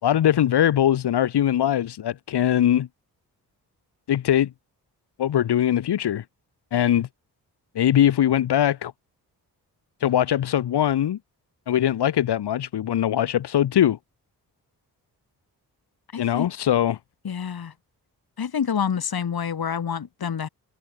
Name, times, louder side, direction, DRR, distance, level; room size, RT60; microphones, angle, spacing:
voice 1, 0.0-2.9 4.1-4.5 5.2-6.2 6.7-7.1 7.8-8.9 10.0-11.2 11.7-14.0 16.2-17.0, left 11 dB, 80° left, 5.9 m, -21 dB
voice 2, 16.1-16.5 17.2-17.7 18.4-20.5, left 7 dB, 65° left, 7.6 m, -27 dB
supercardioid pair, 50°, 39 cm